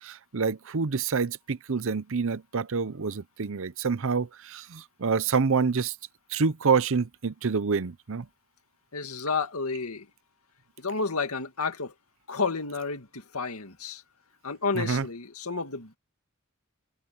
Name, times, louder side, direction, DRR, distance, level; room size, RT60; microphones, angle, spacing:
voice 1, 0.0-5.9 6.3-8.3 14.8-15.0, right 5 dB, 65° right, 0.7 m, -27 dB
voice 2, 8.9-10.1 10.8-11.9 12.3-14.0 14.4-16.0, left 4 dB, 85° left, 2.1 m, -31 dB
head